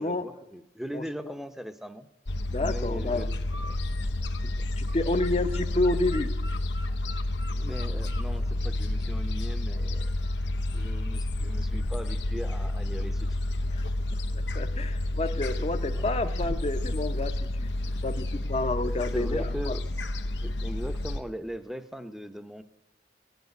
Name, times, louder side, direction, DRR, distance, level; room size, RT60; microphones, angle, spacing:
voice 1, 0.0-2.1 2.6-3.8 7.5-10.1 10.7-13.4 16.0-16.1 19.1-19.8 20.4-22.6, equal, ahead, 10 dB, 0.7 m, -39 dB
Gull seagull, 2.3-21.2, left 1 dB, 90° left, 0.8 m, -30 dB
voice 2, 2.5-3.3 4.8-6.3 13.7-13.8 14.3-17.7 18.0-19.8, left 2 dB, 35° left, 8 dB, 0.7 m, -29 dB
17.5 x 8.1 x 9.3 m, 0.92 s
head